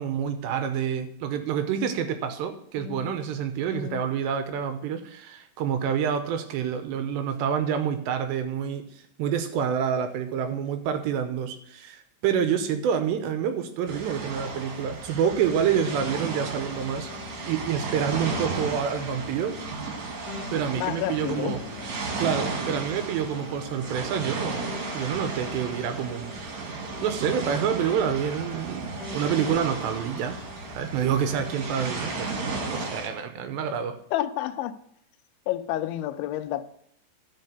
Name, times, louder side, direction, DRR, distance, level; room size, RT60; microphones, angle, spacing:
voice 1, 0.0-8.9 9.2-17.1 17.5-19.6 20.5-21.6 22.0-24.6 24.9-26.3 27.0-30.4 30.8-32.3 32.7-34.0, right 8 dB, 80° right, 2.8 m, -27 dB
voice 2, 2.8-3.3 3.7-4.0 20.7-21.6 34.1-34.8 35.5-36.6, left 13 dB, 85° left, 2.9 m, -30 dB
sound 1, 13.9-33.1, right 3 dB, 55° right, 2.4 m, -34 dB
sound 2, 15.5-17.7 18.1-22.1 22.5-26.5 26.9-30.8 31.3-33.0, left 4 dB, 45° left, 2.4 m, -42 dB
12.5 x 5.3 x 6.6 m
omnidirectional pair, 5.4 m